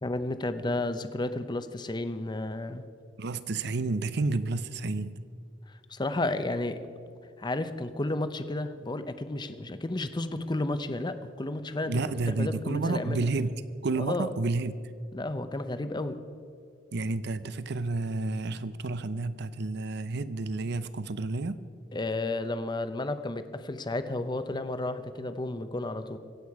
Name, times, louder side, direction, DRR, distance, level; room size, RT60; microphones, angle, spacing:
voice 1, 0.0-2.8 5.9-6.8 7.4-11.9 12.4-13.2 14.0-14.3 15.1-16.2 21.9-26.2, left 2 dB, 25° left, 10 dB, 0.7 m, -32 dB
voice 2, 3.2-5.2 11.9-14.8 16.9-21.6, right 3 dB, 65° right, 14 dB, 0.6 m, -30 dB
25.0 x 8.3 x 4.7 m, 2.3 s
head